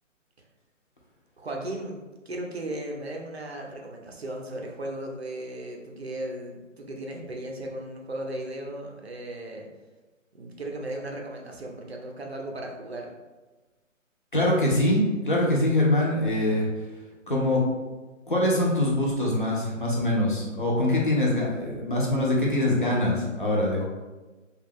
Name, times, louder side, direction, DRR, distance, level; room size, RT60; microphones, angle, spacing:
voice 1, 1.4-2.0 2.3-9.7 10.3-13.1, right 1 dB, 50° right, 1 dB, 0.5 m, -36 dB
voice 2, 14.3-16.7 17.3-17.6 18.3-23.8, left 1 dB, 40° left, -4 dB, 0.6 m, -23 dB
3.0 x 2.3 x 3.4 m, 1.2 s
hypercardioid pair, 180°, 40 cm